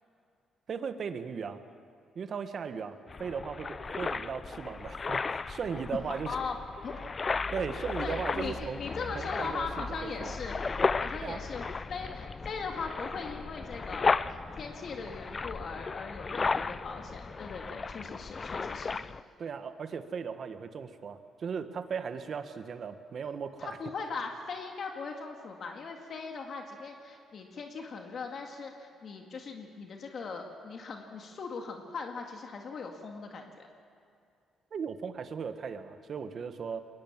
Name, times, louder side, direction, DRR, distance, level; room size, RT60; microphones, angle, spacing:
voice 1, 0.7-1.6 2.1-6.4 7.5-8.8 9.1-10.4 11.2-11.4 19.4-23.8 34.7-36.8, right 6 dB, 50° right, 9 dB, 1.4 m, -37 dB
sound 1, 3.1-19.2, left 4 dB, 35° left, 0.5 m, -35 dB
voice 2, 7.8-10.6 11.0-14.2 14.6-19.0 23.6-33.7, left 4 dB, 55° left, 3 dB, 2.0 m, -39 dB
22.0 x 19.0 x 7.4 m, 2.5 s
cardioid pair, 90°, 0 cm